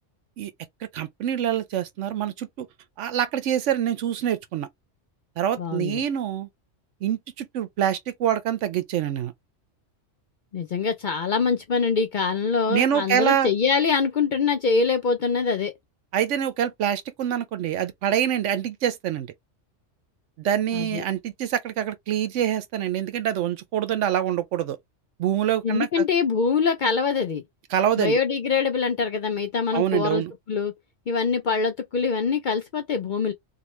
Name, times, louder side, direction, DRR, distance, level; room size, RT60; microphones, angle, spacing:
voice 1, 0.9-2.7 3.0-4.7 5.4-6.5 7.0-9.3 12.7-13.5 16.1-19.3 20.4-24.8 25.2-26.0 27.7-28.2 29.7-30.3, right 10 dB, 80° right, 0.9 m, -25 dB
voice 2, 5.6-6.0 10.5-15.7 20.7-21.0 25.6-27.4 28.0-30.7 31.1-33.3, left 5 dB, 55° left, 0.5 m, -24 dB
2.8 x 2.3 x 3.1 m
omnidirectional pair, 1.3 m